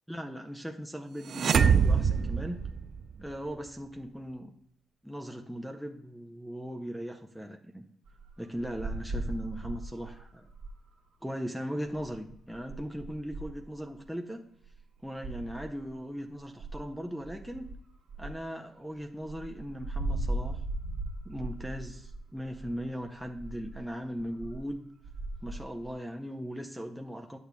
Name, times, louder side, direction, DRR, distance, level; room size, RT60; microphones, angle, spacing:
voice 1, 0.1-2.7 3.2-4.5 5.0-7.8 8.4-10.5 11.2-14.4 15.0-17.7 18.2-20.6 21.2-24.8 25.4-27.4, equal, ahead, 2 dB, 0.5 m, -38 dB
sound 1, 1.3-3.3, right 6 dB, 55° right, 0.3 m, -24 dB
sound 2, 8.1-10.9 11.9-14.1 14.6-14.8 15.2-15.9 16.4-17.8 18.1-18.4 18.9-19.0 19.2-24.7 25.0-25.9, right 2 dB, 85° right, 1.4 m, -38 dB
9.1 x 6.8 x 2.2 m, 0.73 s
cardioid pair, 90°, 0 cm